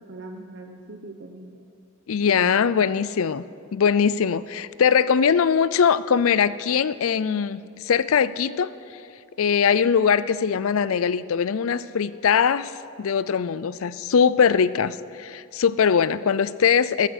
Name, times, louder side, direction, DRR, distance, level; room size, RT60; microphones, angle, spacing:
voice 1, 0.0-1.7 2.3-3.0, right 2 dB, 55° right, 2 dB, 0.9 m, -41 dB
voice 2, 2.1-3.4 3.7-8.7 9.4-12.7 13.0-17.1, left 7 dB, 70° left, 17 dB, 0.4 m, -21 dB
14.0 x 13.5 x 6.5 m, 2.4 s
head